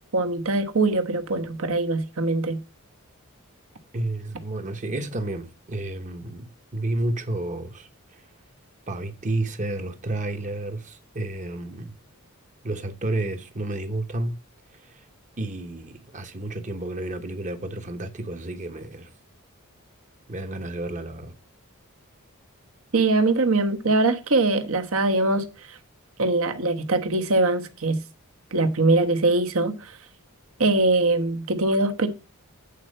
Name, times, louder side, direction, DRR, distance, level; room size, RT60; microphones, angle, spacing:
voice 1, 0.1-2.6 22.9-25.8 26.2-28.0 28.5-29.7 30.6-32.1, right 2 dB, 70° right, 1.2 m, -22 dB
voice 2, 3.9-8.3 8.9-12.0 12.6-14.4 14.7-15.1 15.4-19.1 20.3-21.3, right 2 dB, 35° right, 1.0 m, -31 dB
8.3 x 4.4 x 6.4 m
head